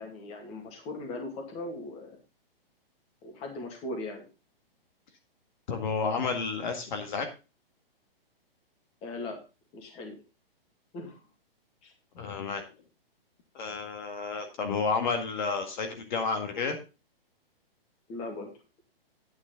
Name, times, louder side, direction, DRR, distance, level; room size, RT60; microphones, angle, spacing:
voice 1, 0.0-2.2 3.2-4.3 9.0-9.4 9.7-10.2 10.9-11.3 11.8-11.9 18.1-18.5, left 2 dB, 20° left, 3 dB, 2.2 m, -39 dB
voice 2, 5.7-7.3 12.2-12.7 13.6-16.8, left 4 dB, 50° left, 6 dB, 1.9 m, -31 dB
9.8 x 8.7 x 3.9 m, 0.30 s
hypercardioid pair, 160°, 30 cm